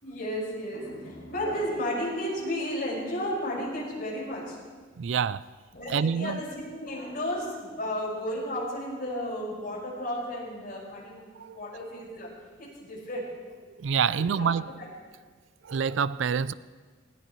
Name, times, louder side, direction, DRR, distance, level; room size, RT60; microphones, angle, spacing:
voice 1, 0.0-4.6 5.7-11.3 11.5-12.3 12.6-13.3 14.2-14.5 14.8-14.9, equal, 50° left, 5.7 m, -33 dB
voice 2, 5.0-5.5 5.9-6.4 11.4-11.6 13.8-14.7 15.6-16.5, right 6 dB, 75° right, 0.4 m, -27 dB
20.0 x 17.0 x 3.2 m
head